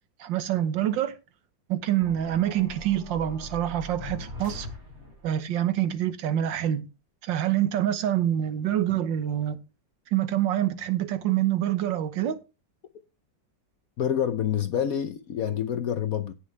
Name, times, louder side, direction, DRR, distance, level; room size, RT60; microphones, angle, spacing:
voice 1, 0.2-1.1 1.7-4.7 5.2-6.8 7.2-9.6 10.1-12.4, right 11 dB, 80° right, 1.7 m, -26 dB
sound 1, 2.0-5.4, left 1 dB, 45° right, 3.9 m, -41 dB
voice 2, 14.0-16.3, left 9 dB, 60° left, 1.0 m, -27 dB
17.5 x 6.5 x 3.2 m
omnidirectional pair, 2.0 m